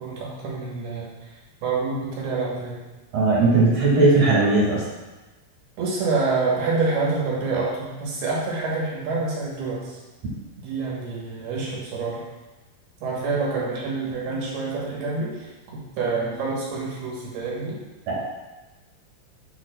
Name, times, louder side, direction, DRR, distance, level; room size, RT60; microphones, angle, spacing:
voice 1, 0.0-1.3 1.6-2.8 5.8-10.0 10.6-12.3 13.0-15.5 16.0-17.8, right 3 dB, 65° right, -5 dB, 3.0 m, -27 dB
voice 2, 3.1-4.8 18.1-18.2, right 3 dB, 45° right, -6 dB, 2.6 m, -18 dB
7.3 x 6.3 x 2.4 m, 1.1 s
omnidirectional pair, 5.4 m